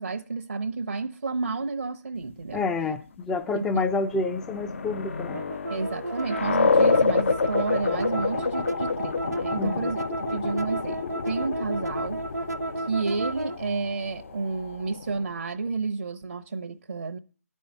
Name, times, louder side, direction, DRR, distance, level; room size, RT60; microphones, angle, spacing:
voice 1, 0.0-2.7 3.5-3.9 5.7-10.0 10.3-12.2 12.8-17.2, right 4 dB, 60° right, 0.8 m, -31 dB
voice 2, 2.5-5.4 9.6-9.9, left 3 dB, 5° left, 0.5 m, -28 dB
sound 1, 3.9-15.3, left 4 dB, 50° left, 0.7 m, -28 dB
sound 2, 5.3-13.6, right 2 dB, 90° right, 0.5 m, -33 dB
11.0 x 5.5 x 8.2 m
figure-of-eight pair, 145°, 9 cm